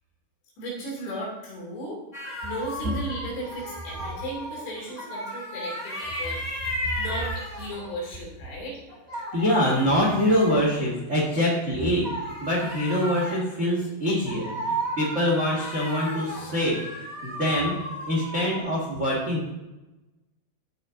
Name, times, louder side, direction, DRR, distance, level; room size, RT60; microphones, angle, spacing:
voice 1, 0.6-2.0 2.4-6.4 7.0-8.8, right 1 dB, 90° left, -3 dB, 5.2 m, -35 dB
sound 1, 2.1-8.1 8.9-11.3 12.0-18.6, equal, 20° left, 1.0 m, -35 dB
voice 2, 9.3-12.1 12.4-16.8 17.2-17.7 18.0-19.5, equal, 90° right, -3 dB, 0.6 m, -24 dB
14.5 x 5.4 x 3.8 m, 1.0 s
omnidirectional pair, 4.9 m